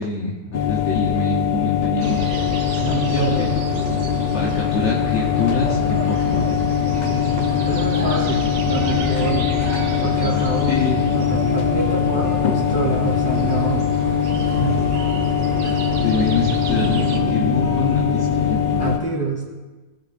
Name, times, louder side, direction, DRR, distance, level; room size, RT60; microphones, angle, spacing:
voice 1, 0.0-2.2 3.1-3.3 4.3-6.5 10.7-11.3 14.5-14.6 16.0-18.6, left 3 dB, 75° left, -3 dB, 1.3 m, -25 dB
sound 1, 0.5-19.0, left 10 dB, 45° left, 0.7 m, -22 dB
sound 2, 2.0-17.2, right 5 dB, 90° right, 1.1 m, -30 dB
voice 2, 2.8-3.6 7.6-9.5 10.0-13.9 14.6-14.8 15.6-15.8 18.8-19.5, right 3 dB, 20° left, -4 dB, 2.6 m, -27 dB
sound 3, 6.9-18.9, equal, 35° right, 1.7 m, -30 dB
19.0 x 6.6 x 2.5 m, 1.3 s
omnidirectional pair, 1.2 m